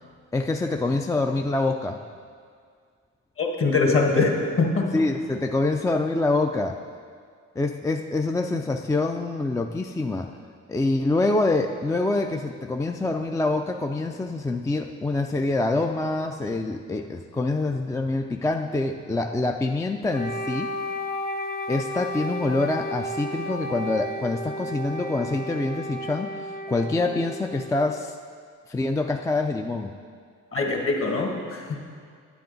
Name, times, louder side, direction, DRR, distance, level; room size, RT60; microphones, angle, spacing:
voice 1, 0.3-2.0 4.9-6.8 7.6-10.4 10.7-20.7 21.7-26.3 26.7-28.2 28.7-29.9, left 2 dB, 10° left, 4 dB, 0.3 m, -25 dB
voice 2, 3.4-4.9 30.5-31.8, left 3 dB, 45° left, 1 dB, 1.6 m, -23 dB
Wind instrument woodwind instrument, 20.1-28.2, equal, 30° left, 1.0 m, -33 dB
9.4 x 9.0 x 3.9 m, 2.1 s
cardioid pair, 90°, 30 cm